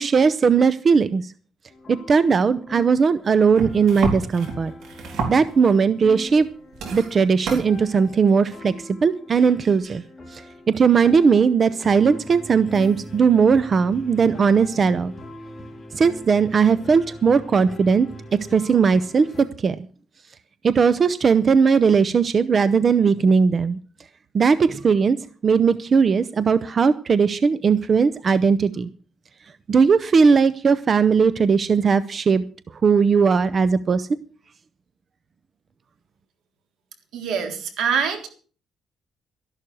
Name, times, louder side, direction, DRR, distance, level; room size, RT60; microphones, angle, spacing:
voice 1, 0.0-1.3 1.9-4.7 5.3-6.5 6.9-10.0 10.3-15.1 15.9-18.1 18.5-19.8 20.6-23.8 24.3-25.2 25.4-28.9 29.7-32.4 32.8-34.1, right 5 dB, 30° right, 14 dB, 0.6 m, -18 dB
sound 1, 1.7-19.4, left 1 dB, 20° left, 3.6 m, -41 dB
sound 2, 3.5-5.8 6.3-6.5 6.7-7.7 8.7-8.8, right 4 dB, 65° right, 4.3 m, -29 dB
voice 2, 37.1-38.3, right 6 dB, 85° right, 5 dB, 3.7 m, -24 dB
13.0 x 11.5 x 6.2 m, 0.40 s
cardioid pair, 170°, 0 cm